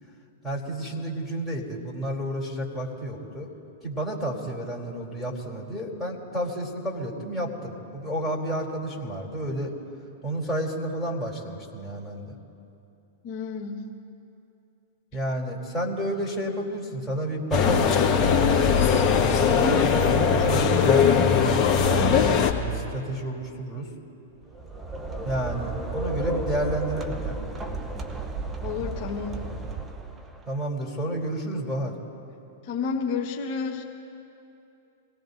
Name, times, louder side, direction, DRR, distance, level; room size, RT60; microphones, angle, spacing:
voice 1, 0.4-3.5 3.8-9.7 10.2-12.3 15.1-18.9 19.5-23.9 25.2-27.4 30.4-31.9, right 1 dB, 10° left, -3 dB, 3.2 m, -31 dB
voice 2, 13.2-13.9 19.5-19.8 28.6-29.4 32.7-33.8, left 5 dB, 50° left, -2 dB, 1.3 m, -30 dB
sound 1, 17.5-22.5, left 6 dB, 25° left, 1.7 m, -20 dB
sound 2, 24.4-30.5, right 2 dB, 20° right, 0.9 m, -33 dB
26.5 x 18.0 x 2.7 m, 2.8 s
hypercardioid pair, 115°, 0 cm